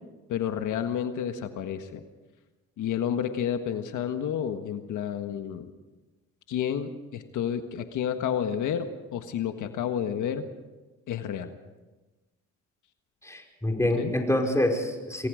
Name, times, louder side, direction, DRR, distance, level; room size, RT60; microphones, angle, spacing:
voice 1, 0.3-2.0 2.8-5.7 6.5-10.5 11.1-11.5 14.0-14.1, left 9 dB, 80° left, 7 dB, 1.6 m, -30 dB
voice 2, 13.2-15.3, left 1 dB, 10° left, 2 dB, 5.2 m, -26 dB
28.0 x 22.0 x 5.1 m, 1.2 s
cardioid pair, 90°, 30 cm